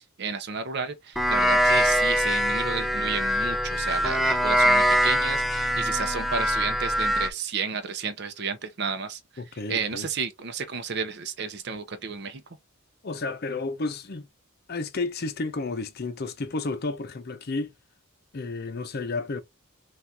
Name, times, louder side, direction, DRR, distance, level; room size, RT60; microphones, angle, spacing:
voice 1, 0.2-9.2 9.7-12.4, right 5 dB, 50° right, 0.6 m, -32 dB
sound 1, 1.2-7.3, equal, ahead, 0.4 m, -23 dB
voice 2, 9.4-10.1 13.0-14.3 14.7-17.7 18.3-19.4, left 3 dB, 45° left, 0.6 m, -31 dB
5.9 x 2.4 x 2.7 m
head